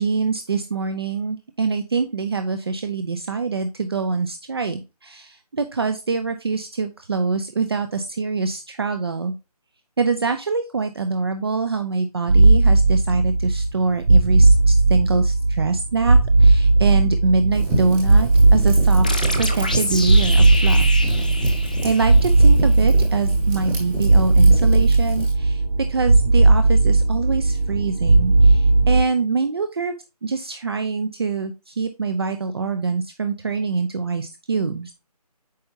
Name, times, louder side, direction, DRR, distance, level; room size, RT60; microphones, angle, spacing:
voice 1, 0.0-9.3 10.0-19.1 19.4-20.9 21.8-25.6 25.9-29.9 30.2-34.9, right 4 dB, 40° right, 8 dB, 0.6 m, -24 dB
sound 1, 12.3-29.0, right 3 dB, 70° right, 0.9 m, -16 dB
Fire, 17.5-25.3, right 2 dB, 5° right, 1.0 m, -29 dB
sound 2, 19.0-22.5, left 2 dB, 15° left, 0.4 m, -28 dB
8.5 x 5.6 x 2.7 m, 0.26 s
figure-of-eight pair, 165°, 20 cm